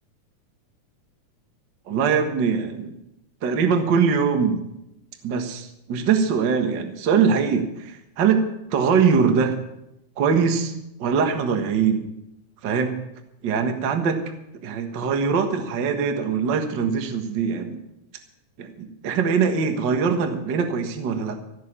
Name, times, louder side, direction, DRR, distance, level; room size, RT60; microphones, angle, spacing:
voice 1, 1.9-2.9 3.4-4.6 5.2-9.6 10.2-10.7 11.0-12.0 12.6-13.0 13.4-14.2 14.6-17.8 18.6-21.4, right 6 dB, 45° right, 6 dB, 1.7 m, -22 dB
16.0 x 6.8 x 9.9 m, 0.85 s
omnidirectional pair, 3.6 m